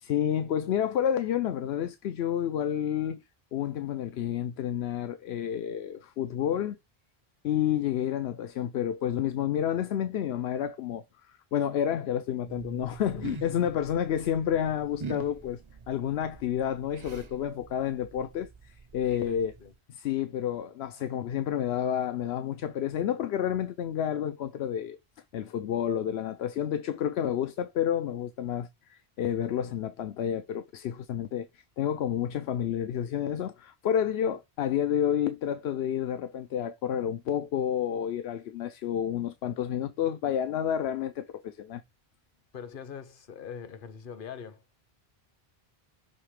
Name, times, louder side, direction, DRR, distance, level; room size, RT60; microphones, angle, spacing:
voice 1, 0.0-3.2 3.5-6.8 7.4-11.0 11.5-15.6 15.9-19.5 19.9-25.0 25.3-41.8, left 9 dB, 85° left, 0.8 m, -30 dB
sound 1, 12.5-19.8, right 4 dB, 35° right, 0.5 m, -45 dB
voice 2, 19.3-19.7 42.5-44.6, left 7 dB, 60° left, 0.9 m, -43 dB
6.5 x 3.3 x 4.8 m
omnidirectional pair, 1.0 m